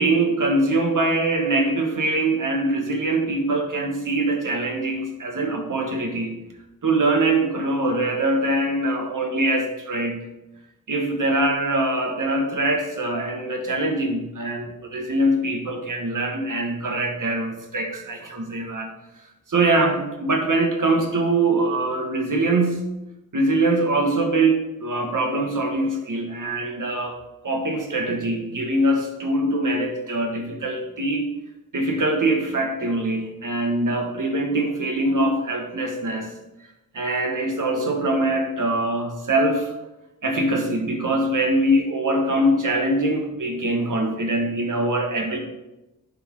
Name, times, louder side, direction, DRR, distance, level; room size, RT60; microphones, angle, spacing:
voice 1, 0.0-6.4 6.8-10.2 10.9-18.9 19.5-22.9 23.3-27.2 27.4-31.3 31.7-36.3 36.9-39.7 40.2-45.4, right 2 dB, 60° right, 3 dB, 1.5 m, -23 dB
11.0 x 3.7 x 3.8 m, 0.97 s
cardioid pair, 50°, 35 cm